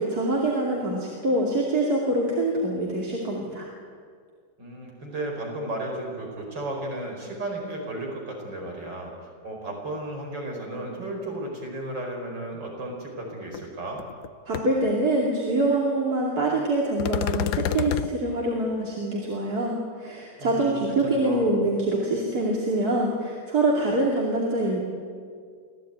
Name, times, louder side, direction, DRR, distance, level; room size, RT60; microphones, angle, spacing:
voice 1, 0.0-3.7 14.5-24.8, right 2 dB, 60° right, -3 dB, 3.2 m, -25 dB
voice 2, 4.6-9.1 9.4-14.0 20.4-21.5, right 1 dB, 85° right, 1 dB, 5.6 m, -34 dB
sound 1, 13.5-13.6 14.0-14.3 14.5-14.6 17.0-18.1, left 10 dB, 70° left, 1.3 m, -27 dB
26.0 x 17.0 x 9.2 m, 2.1 s
omnidirectional pair, 1.9 m